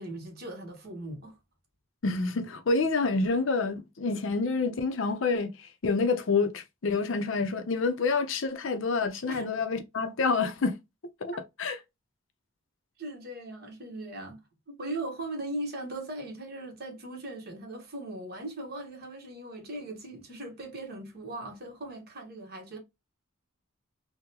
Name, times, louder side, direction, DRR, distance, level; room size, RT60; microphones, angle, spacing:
voice 1, 0.0-1.4 9.3-9.5 11.3-11.4 13.0-14.4 14.7-22.8, right 1 dB, 45° right, 1.1 m, -39 dB
voice 2, 2.0-10.7 11.2-11.3 11.6-11.8, left 4 dB, 65° left, 0.6 m, -28 dB
3.7 x 2.1 x 2.8 m
head